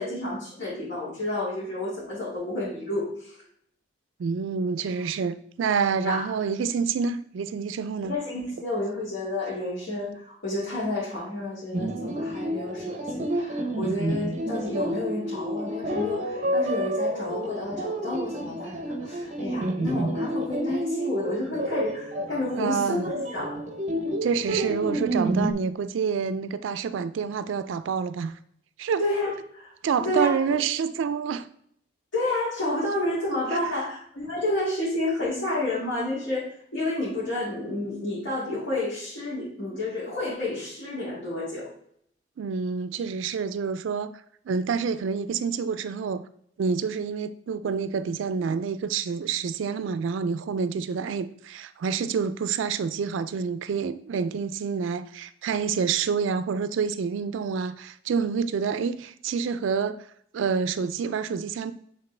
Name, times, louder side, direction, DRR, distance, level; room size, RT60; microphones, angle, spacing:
voice 1, 0.0-3.4 6.0-6.3 8.0-23.6 29.0-29.7 30.0-30.3 32.1-41.7, left 1 dB, 70° left, 2.1 m, -30 dB
voice 2, 4.2-8.1 22.5-23.1 24.2-28.4 28.8-29.0 29.8-31.5 33.5-33.8 42.4-44.2 44.5-46.2 46.6-60.0 60.3-61.7, right 6 dB, 75° right, 0.3 m, -28 dB
sound 1, 11.7-25.5, right 1 dB, 35° right, 0.7 m, -29 dB
8.2 x 3.6 x 3.2 m
head